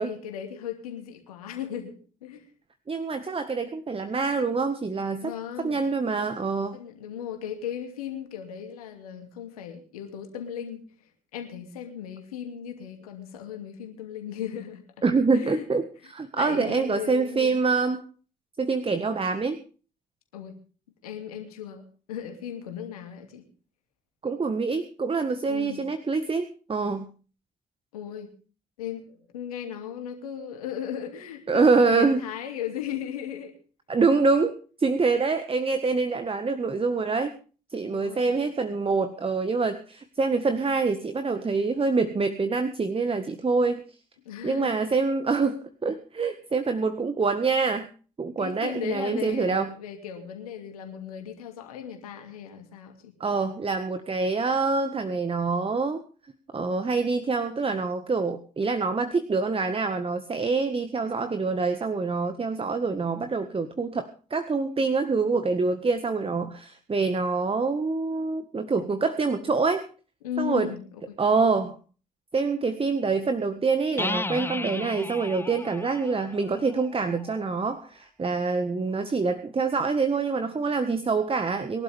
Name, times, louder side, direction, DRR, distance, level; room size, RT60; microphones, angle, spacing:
voice 1, 0.0-2.5 5.2-5.8 6.7-10.8 11.3-14.8 15.3-15.7 16.4-17.6 20.3-20.6 21.0-23.5 25.4-25.8 27.9-28.3 28.8-33.5 37.8-38.4 44.2-44.8 48.4-53.1 70.2-71.2, left 9 dB, 85° left, 5 dB, 2.7 m, -36 dB
voice 2, 2.9-5.3 5.6-6.8 15.0-15.8 16.1-18.0 18.6-19.6 24.2-27.1 31.5-32.2 33.9-34.5 34.8-37.3 37.7-43.8 44.4-47.9 48.2-49.7 53.2-56.0 56.5-69.8 70.4-70.7 71.2-71.8 72.3-81.8, right 4 dB, 30° right, 9 dB, 1.7 m, -25 dB
sound 1, 74.0-77.6, left 2 dB, 10° left, 0.7 m, -35 dB
23.0 x 12.0 x 3.6 m, 0.38 s
hypercardioid pair, 50°, 18 cm